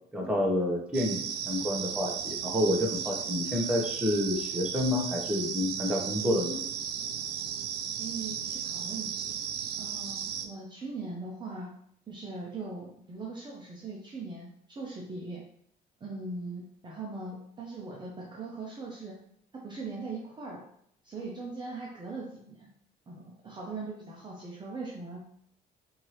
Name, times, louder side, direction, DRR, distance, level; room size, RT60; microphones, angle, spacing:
voice 1, 0.1-6.6, left 1 dB, 5° right, -2 dB, 1.0 m, -29 dB
sound 1, 0.9-10.5, right 8 dB, 75° right, 0.4 m, -35 dB
voice 2, 8.0-9.4 9.8-11.7 12.1-15.4 16.0-19.2 19.5-20.7 21.0-22.7 23.1-25.2, right 3 dB, 25° right, -3 dB, 0.7 m, -40 dB
4.5 x 2.7 x 3.1 m, 0.69 s
cardioid pair, 110°, 17 cm